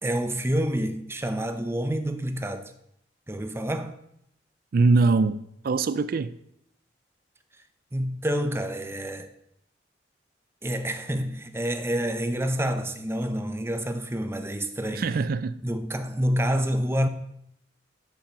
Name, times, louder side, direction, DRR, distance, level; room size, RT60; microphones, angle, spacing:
voice 1, 0.0-2.7 3.3-4.0 7.9-9.3 10.6-15.0 15.6-17.1, equal, 15° right, 0.7 m, -28 dB
voice 2, 4.7-5.4 5.6-6.4 14.9-15.6, right 3 dB, 55° right, 0.4 m, -22 dB
12.0 x 5.8 x 5.1 m
head